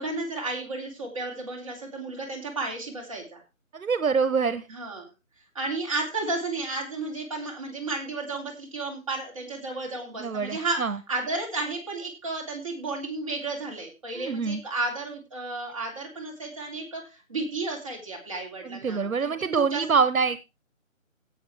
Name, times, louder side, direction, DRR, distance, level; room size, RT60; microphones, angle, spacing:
voice 1, 0.0-3.4 4.7-5.1 5.5-10.8 11.1-19.8, right 3 dB, 25° right, -1 dB, 3.2 m, -33 dB
voice 2, 3.7-4.7 10.2-11.0 14.2-14.6 18.6-20.4, right 5 dB, 85° right, 14 dB, 1.1 m, -25 dB
16.5 x 6.7 x 4.6 m, 0.28 s
figure-of-eight pair, 175°, 41 cm